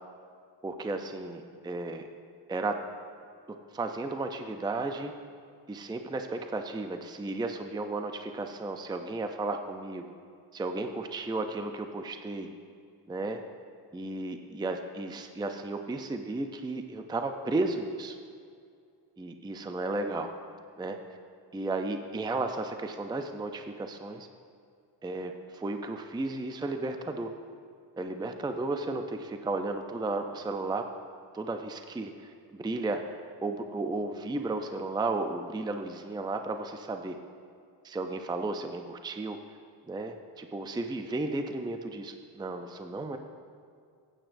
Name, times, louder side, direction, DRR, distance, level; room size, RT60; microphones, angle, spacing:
voice 1, 0.6-2.0 2.5-2.8 3.7-5.1 5.7-10.1 10.5-12.5 13.1-13.4 13.9-18.2 19.2-20.3 20.8-21.0 21.5-24.3 25.0-27.3 28.0-30.8 31.3-33.0 33.4-37.2 37.8-39.4 39.9-43.2, right 2 dB, 10° right, 6 dB, 0.4 m, -34 dB
15.0 x 8.9 x 2.6 m, 2.3 s
wide cardioid pair, 90°, 45 cm